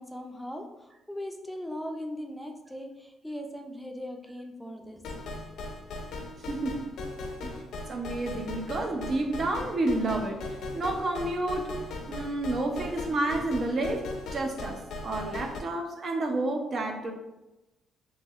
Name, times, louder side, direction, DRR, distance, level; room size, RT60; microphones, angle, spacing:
voice 1, 0.0-5.3, equal, ahead, 3 dB, 0.4 m, -39 dB
sound 1, 5.0-15.6, left 2 dB, 75° left, 0.4 m, -39 dB
voice 2, 6.5-6.9 7.4-7.6 7.9-11.7 12.1-17.1, right 2 dB, 50° right, 3 dB, 0.5 m, -30 dB
2.9 x 2.7 x 2.4 m, 0.99 s
cardioid pair, 90°, 0 cm